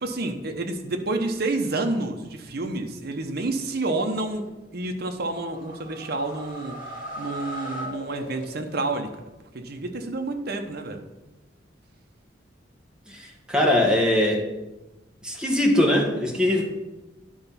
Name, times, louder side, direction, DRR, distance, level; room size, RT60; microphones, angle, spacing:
voice 1, 0.0-4.4 4.7-6.8 7.2-9.1 9.5-11.0, right 2 dB, 55° right, 4 dB, 0.9 m, -29 dB
sound 1, 5.3-9.0, equal, 45° left, 2.7 m, -38 dB
voice 2, 13.1-14.4 15.2-16.7, left 1 dB, 5° right, -1 dB, 1.3 m, -21 dB
10.5 x 4.0 x 5.7 m, 1.0 s
head